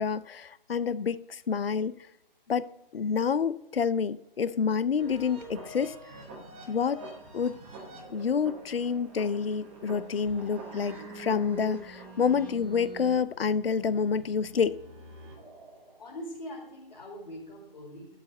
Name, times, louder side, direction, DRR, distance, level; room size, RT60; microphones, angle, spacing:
voice 1, 0.0-1.9 2.5-2.7 2.9-5.9 6.7-7.0 7.3-7.5 8.1-14.8, left 6 dB, 75° left, 0.6 m, -28 dB
sound 1, 5.0-16.0, right 2 dB, 10° right, 1.0 m, -45 dB
voice 2, 16.0-18.2, equal, 45° left, 4.1 m, -42 dB
12.0 x 4.9 x 7.1 m
figure-of-eight pair, 160°, 30 cm